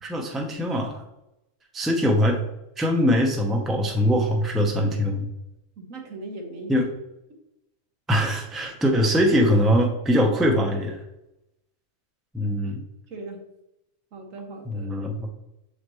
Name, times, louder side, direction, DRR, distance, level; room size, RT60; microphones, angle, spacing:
voice 1, 0.0-1.0 1.7-2.4 2.8-5.2 6.7-6.9 8.1-11.0 12.3-12.8 14.7-15.3, equal, ahead, 1 dB, 0.6 m, -22 dB
voice 2, 5.8-6.8 12.4-12.6 13.1-13.5 14.1-14.9, right 2 dB, 80° right, 2 dB, 1.5 m, -39 dB
7.3 x 5.0 x 3.1 m, 0.89 s
omnidirectional pair, 1.3 m